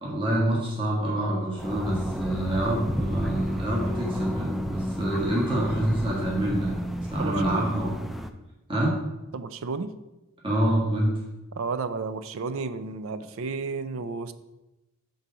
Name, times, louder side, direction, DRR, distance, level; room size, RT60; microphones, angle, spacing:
voice 1, 0.0-6.8 7.1-7.9 8.7-8.9 10.4-11.1, right 1 dB, 25° right, -5 dB, 1.6 m, -26 dB
sound 1, 1.6-8.3, equal, ahead, 0.3 m, -31 dB
voice 2, 7.2-7.7 9.3-9.9 11.5-14.3, right 4 dB, 85° right, 12 dB, 0.4 m, -32 dB
6.1 x 3.9 x 5.5 m, 0.99 s
head